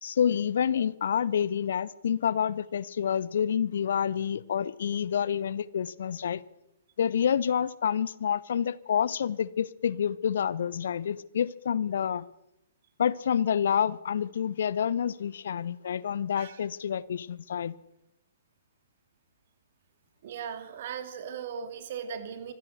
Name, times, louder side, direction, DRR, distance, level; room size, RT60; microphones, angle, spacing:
voice 1, 0.0-6.4 7.0-12.3 13.0-17.8, left 8 dB, 55° left, 0.9 m, -28 dB
voice 2, 20.2-22.5, right 7 dB, 45° right, 2.9 m, -38 dB
25.5 x 16.5 x 6.8 m
figure-of-eight pair, 120°, 0 cm